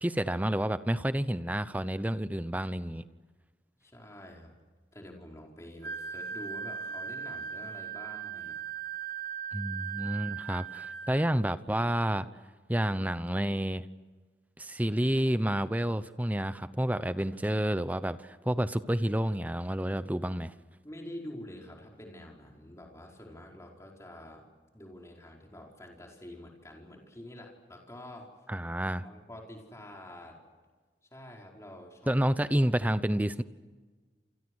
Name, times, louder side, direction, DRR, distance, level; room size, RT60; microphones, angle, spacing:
voice 1, 0.0-3.0 9.5-12.3 12.7-13.9 14.6-20.5 28.5-29.1 32.1-33.4, right 1 dB, 10° right, 13 dB, 0.8 m, -29 dB
voice 2, 3.8-4.5 4.9-8.6 20.8-24.5 24.7-28.3 29.0-30.4 31.1-32.2, left 1 dB, 15° left, 0 dB, 4.8 m, -47 dB
Wind instrument woodwind instrument, 5.8-11.3, right 7 dB, 75° right, 2.5 m, -38 dB
30.0 x 28.0 x 6.4 m, 1.4 s
head